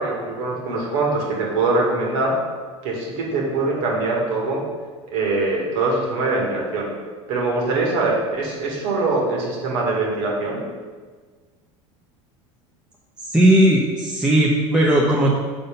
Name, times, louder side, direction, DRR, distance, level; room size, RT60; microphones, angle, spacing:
voice 1, 0.0-2.3 2.8-4.6 5.1-6.9 7.3-10.6, right 3 dB, 70° right, -2 dB, 2.0 m, -23 dB
voice 2, 13.2-15.4, right 1 dB, 5° right, -4 dB, 0.9 m, -17 dB
5.4 x 4.1 x 5.3 m, 1.5 s
hypercardioid pair, 85°, 16 cm